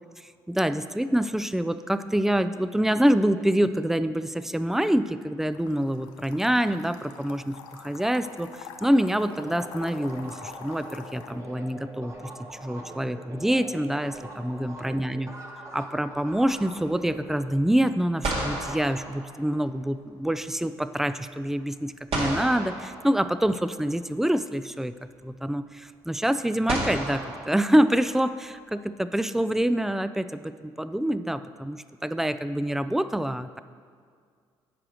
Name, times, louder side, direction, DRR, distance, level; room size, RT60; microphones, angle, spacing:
voice 1, 0.5-12.1 12.6-15.3 15.7-24.9 25.2-33.6, right 1 dB, 5° right, 12 dB, 0.4 m, -26 dB
sound 1, 5.5-11.3, left 7 dB, 90° left, 0.5 m, -45 dB
sound 2, 9.3-18.4, right 1 dB, 25° right, 1.5 m, -43 dB
sound 3, 12.7-13.6 17.7-17.8 18.2-19.9 22.1-23.7 25.0-25.1 26.7-28.3, right 2 dB, 60° right, 2.2 m, -33 dB
9.0 x 4.8 x 6.3 m, 2.1 s
hypercardioid pair, 55°, 12 cm